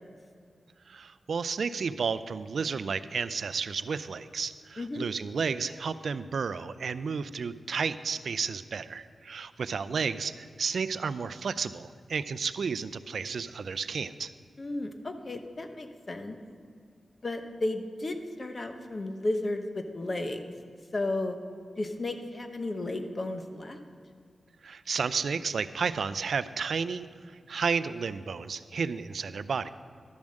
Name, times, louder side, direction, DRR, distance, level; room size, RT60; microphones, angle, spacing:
voice 1, 0.9-14.3 24.6-27.1 27.5-29.7, right 5 dB, 75° right, 14 dB, 0.4 m, -32 dB
voice 2, 14.6-16.4 17.2-20.5 20.9-21.4 21.8-23.8, left 2 dB, 35° left, 7 dB, 0.9 m, -33 dB
12.0 x 7.1 x 6.4 m, 2.2 s
wide cardioid pair, 120°, 0 cm